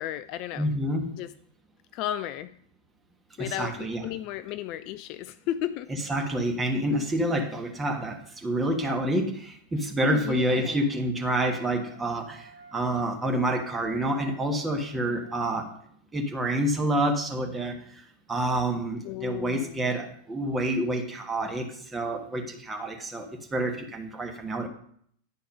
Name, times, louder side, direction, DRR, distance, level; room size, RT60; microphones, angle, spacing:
voice 1, 0.0-0.7 1.2-1.3 1.9-2.5 3.4-5.9 10.0-10.8 19.0-19.9, left 12 dB, 40° left, 13 dB, 0.3 m, -34 dB
voice 2, 0.6-1.1 3.4-4.0 5.9-15.7 16.1-17.8 18.3-24.7, right 1 dB, 15° right, 2 dB, 1.5 m, -28 dB
sound 1, 11.1-15.6, right 4 dB, 80° right, 2.5 m, -50 dB
10.5 x 4.6 x 5.3 m, 0.64 s
figure-of-eight pair, 90°, 0 cm